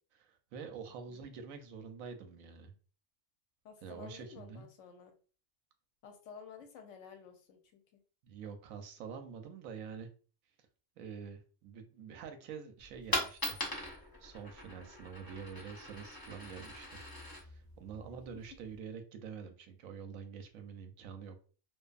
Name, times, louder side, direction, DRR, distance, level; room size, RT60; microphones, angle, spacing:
voice 1, 0.1-2.7 3.8-4.7 8.2-10.1 11.0-13.6 13.9-17.0 17.5-21.4, right 6 dB, 85° right, 6 dB, 1.0 m, -47 dB
voice 2, 3.6-5.1 6.0-8.0 18.1-18.2, left 6 dB, 70° left, 5 dB, 0.9 m, -53 dB
Coin (dropping), 12.8-18.8, left 1 dB, 20° left, 0.6 m, -41 dB
2.6 x 2.3 x 2.3 m, 0.38 s
omnidirectional pair, 1.4 m